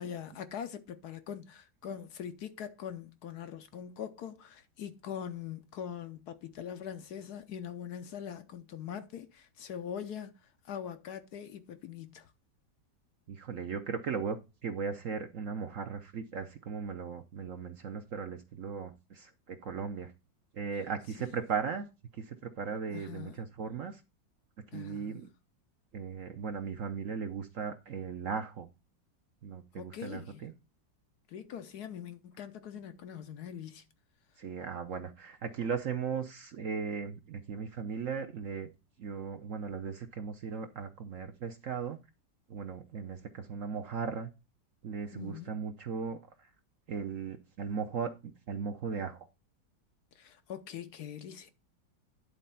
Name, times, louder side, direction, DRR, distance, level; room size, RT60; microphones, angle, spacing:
voice 1, 0.0-10.3 10.6-12.3 22.9-23.4 24.7-25.2 29.8-30.5 31.3-33.8 45.1-45.5 50.1-51.5, left 8 dB, 65° left, 1.2 m, -42 dB
voice 2, 13.3-20.1 20.5-21.9 22.2-24.0 24.7-25.3 25.9-28.7 29.4-30.5 34.4-38.7 39.0-42.0 42.5-44.3 44.8-46.2 46.9-48.1 48.5-49.3, right 6 dB, 55° right, 0.9 m, -37 dB
10.0 x 4.1 x 5.5 m
omnidirectional pair, 1.9 m